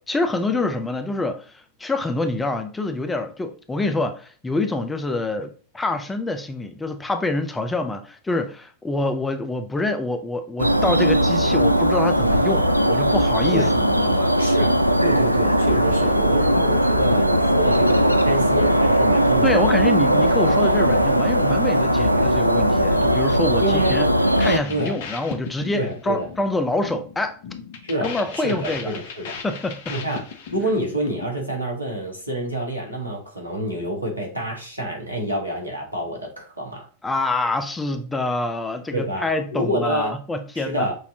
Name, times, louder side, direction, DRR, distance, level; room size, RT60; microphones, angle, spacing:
voice 1, 0.1-14.3 19.4-24.1 24.4-27.4 28.0-28.9 29.4-29.9 37.0-40.9, left 2 dB, 10° left, 0.6 m, -26 dB
sound 1, 10.6-24.6, equal, 90° left, 0.3 m, -19 dB
voice 2, 14.4-20.0 23.6-24.0 24.7-25.0 25.7-26.3 27.8-29.4 29.9-30.2 30.5-36.8 38.9-39.2 39.5-40.2 40.5-41.0, right 1 dB, 85° right, 1.4 m, -27 dB
sound 2, 24.3-31.6, left 6 dB, 50° left, 0.8 m, -37 dB
6.2 x 2.7 x 2.8 m
figure-of-eight pair, 90°, 0 cm